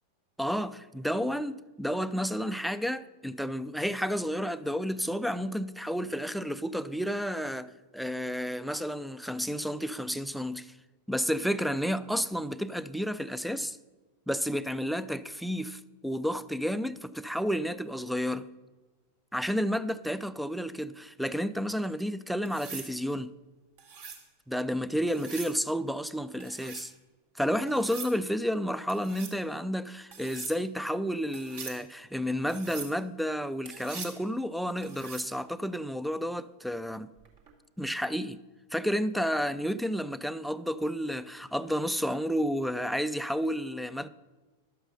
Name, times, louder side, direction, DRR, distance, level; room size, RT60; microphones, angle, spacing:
voice 1, 0.4-10.8 11.1-13.8 14.3-18.5 19.3-23.3 24.5-26.9 27.3-37.1 37.8-38.4 38.7-44.1, equal, ahead, 0.4 m, -31 dB
sound 1, 22.5-22.9 23.8-24.2 25.1-25.6 26.4-26.9 27.7-28.2 28.9-29.4 30.1-30.6 31.3-31.8 32.5-32.9 33.7-34.2 34.8-35.3 37.3-37.5, right 5 dB, 55° right, 2.3 m, -42 dB
12.0 x 7.9 x 5.5 m
figure-of-eight pair, 90°, 0 cm